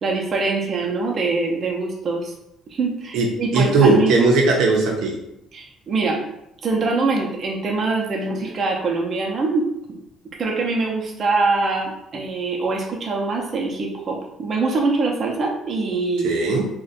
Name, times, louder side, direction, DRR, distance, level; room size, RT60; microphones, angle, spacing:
voice 1, 0.0-2.3 2.7-4.3 5.5-6.2 6.6-10.0 10.4-16.3, right 3 dB, 40° right, -1 dB, 0.6 m, -23 dB
voice 2, 3.1-5.2 16.2-16.7, right 3 dB, 80° right, 0 dB, 0.6 m, -18 dB
2.5 x 2.2 x 4.0 m, 0.80 s
cardioid pair, 115°, 0 cm